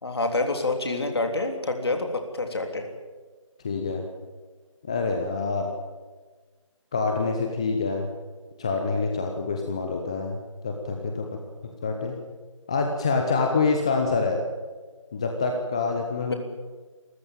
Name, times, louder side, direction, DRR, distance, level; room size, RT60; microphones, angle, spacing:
voice 1, 0.0-2.8 16.2-16.3, left 2 dB, 50° left, 5 dB, 3.4 m, -27 dB
voice 2, 3.6-4.0 4.8-5.7 6.9-8.1 8.6-11.2 11.6-12.2 12.7-14.4 15.1-16.3, left 4 dB, 10° left, 3 dB, 0.7 m, -26 dB
27.5 x 14.0 x 9.1 m, 1.4 s
figure-of-eight pair, 165°, 17 cm